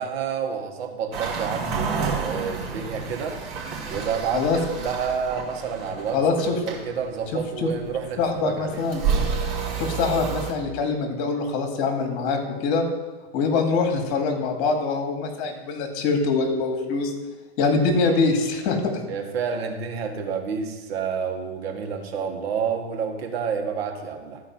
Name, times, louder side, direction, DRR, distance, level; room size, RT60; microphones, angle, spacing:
voice 1, 0.0-3.4 3.9-4.5 4.8-6.2 6.5-8.8 19.1-24.4, right 6 dB, 65° right, 4 dB, 1.7 m, -29 dB
sound 1, 1.1-10.5, right 5 dB, 45° right, 2.8 m, -30 dB
voice 2, 6.1-6.6 7.3-7.7 8.2-9.0 9.8-12.8 13.3-17.1 17.6-18.9, left 4 dB, 45° left, 4 dB, 2.1 m, -24 dB
13.0 x 4.8 x 6.0 m, 1.2 s
hypercardioid pair, 130°, 33 cm